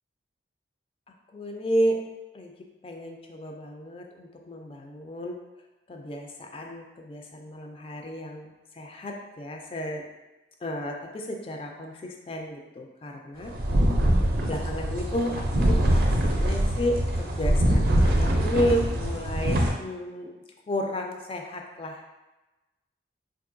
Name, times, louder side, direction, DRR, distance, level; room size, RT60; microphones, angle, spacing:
voice 1, 1.3-2.0 2.3-2.5 2.8-5.4 5.9-10.1 10.6-13.5 14.5-20.3 20.7-22.0, equal, 30° left, 2 dB, 0.3 m, -32 dB
sound 1, 13.4-19.7, right 1 dB, 50° right, 0.5 m, -23 dB
3.6 x 2.5 x 2.5 m, 1.1 s
head